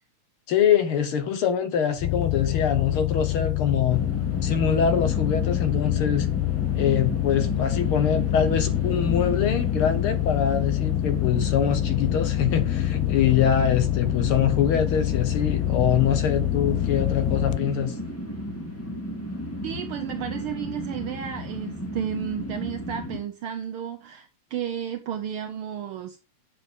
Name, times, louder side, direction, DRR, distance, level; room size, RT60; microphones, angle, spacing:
voice 1, 0.5-4.0 4.4-6.3 6.7-17.9, left 8 dB, 65° left, 1.5 m, -24 dB
sound 1, 2.0-17.6, left 17 dB, 90° left, 1.3 m, -26 dB
sound 2, 3.9-23.2, equal, 5° left, 1.4 m, -34 dB
voice 2, 19.6-26.2, right 9 dB, 75° right, 1.2 m, -32 dB
9.6 x 7.3 x 3.6 m
omnidirectional pair, 3.4 m